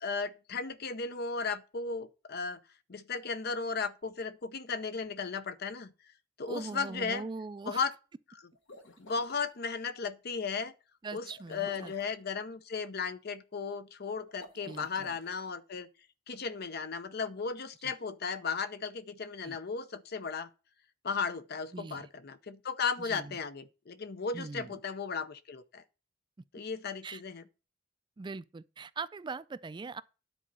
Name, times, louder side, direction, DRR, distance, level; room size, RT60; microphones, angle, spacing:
voice 1, 0.0-2.6 2.9-5.9 6.4-7.3 7.7-7.9 9.0-10.7 11.1-15.9 16.3-20.5 21.0-25.8 26.5-27.4, left 5 dB, 55° left, 0.7 m, -35 dB
voice 2, 6.5-7.8 11.0-11.9 14.7-15.1 17.8-17.9 19.4-19.6 21.7-22.1 23.0-23.4 24.3-24.7 27.0-27.2 28.2-30.0, right 4 dB, 25° right, 0.3 m, -41 dB
sound 1, 8.5-9.4 11.3-12.2 14.3-15.4, left 2 dB, 90° left, 1.5 m, -52 dB
10.0 x 4.1 x 7.4 m
head